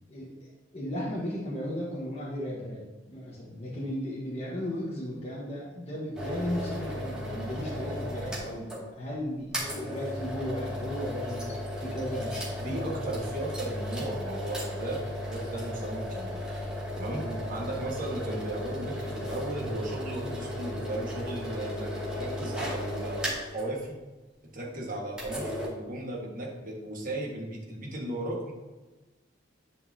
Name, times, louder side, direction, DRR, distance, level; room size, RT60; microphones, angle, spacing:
voice 1, 0.1-12.9 17.2-17.4, equal, 35° left, -5 dB, 1.3 m, -35 dB
sound 1, 6.1-8.8 9.1-9.2 9.5-23.7 25.1-25.7, equal, 5° right, 2.2 m, -35 dB
voice 2, 12.6-16.4 16.9-21.9 22.1-23.9 24.5-28.5, right 1 dB, 45° right, -2 dB, 1.6 m, -36 dB
10.5 x 5.3 x 2.8 m, 1.2 s
head